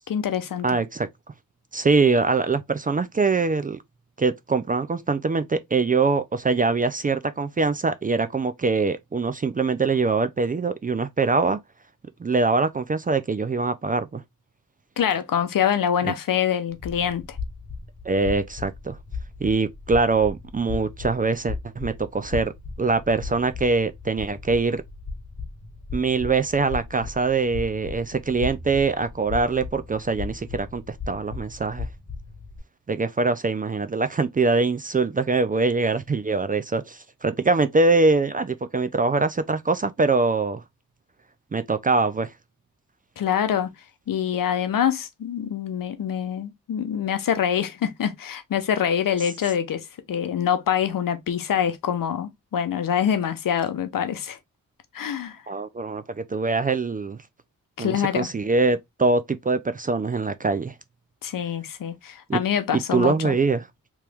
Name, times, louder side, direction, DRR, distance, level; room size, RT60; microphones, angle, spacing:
voice 1, 0.1-0.8 15.0-17.4 43.2-43.7 44.1-54.4 54.9-55.4 57.8-58.3 61.2-63.4, left 9 dB, 70° left, 0.8 m, -25 dB
voice 2, 0.6-1.1 1.7-3.8 4.2-11.6 12.2-14.2 16.0-16.1 18.0-19.0 19.4-22.5 22.8-24.8 25.9-31.9 32.9-40.6 41.5-42.3 55.5-57.2 57.8-60.7 62.3-62.4 62.9-63.6, right 3 dB, 25° right, 0.4 m, -23 dB
sound 1, 16.7-32.6, left 4 dB, 25° left, 1.3 m, -37 dB
3.0 x 2.9 x 3.4 m
cardioid pair, 70°, 35 cm